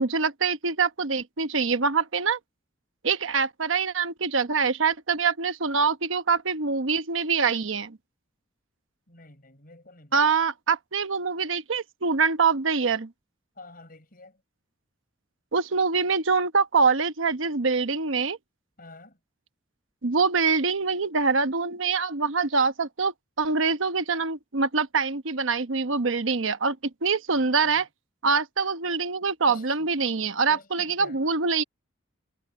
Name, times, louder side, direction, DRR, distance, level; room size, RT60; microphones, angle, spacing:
voice 1, 0.0-2.4 3.0-8.0 10.1-13.1 15.5-18.4 20.0-27.9 28.2-31.6, right 5 dB, 80° right, 1.0 m, -24 dB
voice 2, 9.1-10.2 13.6-14.4 18.8-19.2 27.4-27.8 29.5-29.9 30.5-31.2, left 2 dB, 45° left, 5.3 m, -48 dB
head